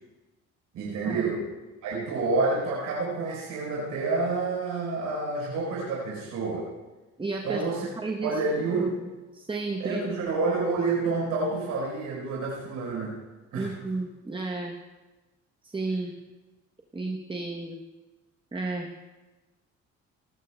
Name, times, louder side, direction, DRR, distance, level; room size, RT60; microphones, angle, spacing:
voice 1, 0.7-1.5 1.8-6.7 7.4-7.9 8.2-9.0 9.8-13.1 13.5-13.7, right 3 dB, 85° right, -4 dB, 4.2 m, -28 dB
voice 2, 7.2-7.6 8.0-8.3 8.7-8.9 9.3-10.0 13.5-14.7 15.6-16.1 16.9-17.8 18.5-18.9, right 3 dB, 15° right, 2 dB, 1.0 m, -32 dB
19.0 x 14.5 x 2.3 m, 1.2 s
cardioid pair, 90°, 30 cm